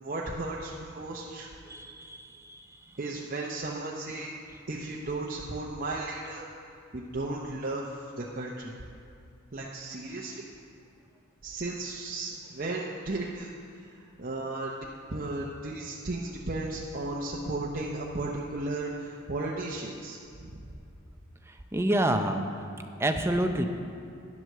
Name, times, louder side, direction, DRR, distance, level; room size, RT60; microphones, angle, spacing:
voice 1, 0.0-1.5 3.0-4.3 4.7-6.5 6.9-8.7 9.5-10.5 11.4-13.5 13.8-14.7 15.1-20.7, right 2 dB, 45° right, -3 dB, 0.8 m, -35 dB
voice 2, 1.7-2.6 21.7-22.5 23.0-23.7, right 1 dB, 15° right, 6 dB, 0.6 m, -27 dB
11.0 x 7.9 x 6.6 m, 2.5 s
head